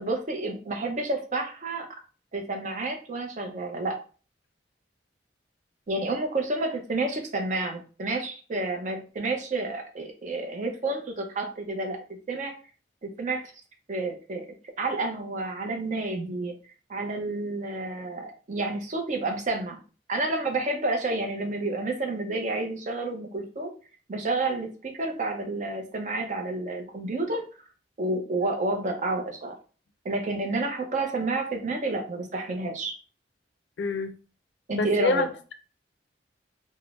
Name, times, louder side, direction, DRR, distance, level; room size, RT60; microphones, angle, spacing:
voice 1, 0.0-1.9 2.3-4.0 5.9-12.0 12.3-12.5 13.0-13.5 13.9-14.5 14.8-16.5 16.9-19.8 20.1-23.7 24.1-27.4 28.0-29.5 30.0-33.0 34.7-35.3, right 2 dB, 45° right, 4 dB, 0.6 m, -30 dB
voice 2, 33.8-34.1 34.7-35.5, left 3 dB, 85° left, 9 dB, 0.4 m, -27 dB
3.6 x 2.0 x 2.4 m, 0.37 s
head